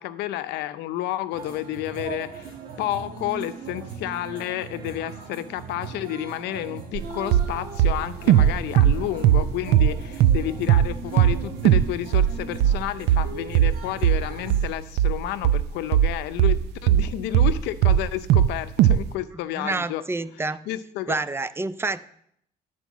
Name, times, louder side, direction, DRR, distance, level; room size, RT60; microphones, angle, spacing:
voice 1, 0.0-20.0 20.7-21.2, left 13 dB, 90° left, 12 dB, 0.6 m, -31 dB
sound 1, 1.3-14.7, right 6 dB, 55° right, 2.0 m, -39 dB
sound 2, 7.0-7.1 7.3-7.5 7.8-10.0 10.2-10.4 10.7-10.9 11.2-11.4 11.7-11.9 12.1-17.6 17.8-18.5 18.8-19.0, right 10 dB, 80° right, 0.5 m, -18 dB
voice 2, 19.5-20.7 21.1-22.0, right 3 dB, 15° right, 14 dB, 0.5 m, -28 dB
11.0 x 4.6 x 7.1 m, 0.70 s
cardioid pair, 110°, 17 cm